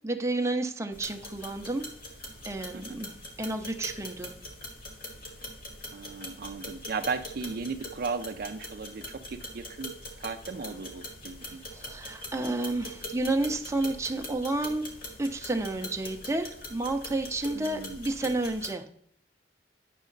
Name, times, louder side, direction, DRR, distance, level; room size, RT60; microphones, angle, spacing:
voice 1, 0.0-1.8 2.4-4.3 11.4-14.8 15.2-18.8, right 2 dB, 15° right, 4 dB, 0.7 m, -31 dB
sound 1, 0.9-18.7, left 1 dB, 55° left, 1.9 m, -43 dB
voice 2, 5.9-9.9 10.2-11.6 17.5-18.0, right 4 dB, 55° right, 8 dB, 0.5 m, -36 dB
9.2 x 6.2 x 3.9 m, 0.64 s
head